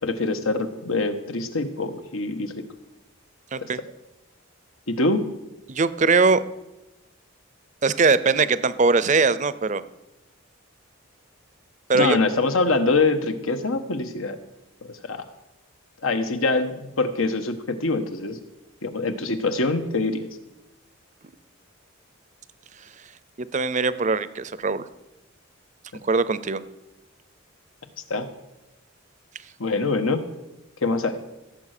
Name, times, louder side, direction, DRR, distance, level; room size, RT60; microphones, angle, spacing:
voice 1, 0.0-2.5 3.6-3.7 4.9-5.2 11.9-14.4 15.0-15.2 16.0-18.4 18.8-20.3 28.1-28.3 29.6-30.2 30.8-31.2, left 3 dB, 80° left, 8 dB, 1.3 m, -24 dB
voice 2, 5.7-6.4 7.8-9.8 11.9-12.2 23.4-24.9 26.0-26.6, right 4 dB, 35° right, 15 dB, 0.6 m, -21 dB
16.0 x 7.8 x 6.7 m, 0.98 s
head